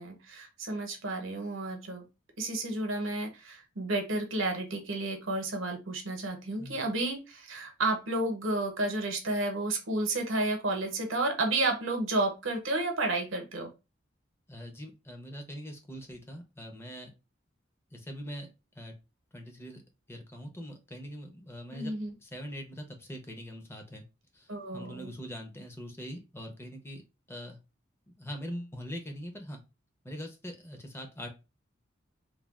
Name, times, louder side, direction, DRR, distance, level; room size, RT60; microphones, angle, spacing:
voice 1, 0.0-2.1 2.4-13.7 21.7-22.1 24.5-25.1, right 2 dB, 75° right, 3 dB, 0.8 m, -31 dB
voice 2, 14.5-17.1 17.9-18.5 18.7-18.9 19.3-19.8 20.1-21.9 22.2-24.0 24.3-27.0 27.3-27.6 28.2-29.6 30.0-31.3, equal, 10° left, 3 dB, 0.6 m, -42 dB
3.3 x 2.3 x 2.3 m, 0.28 s
head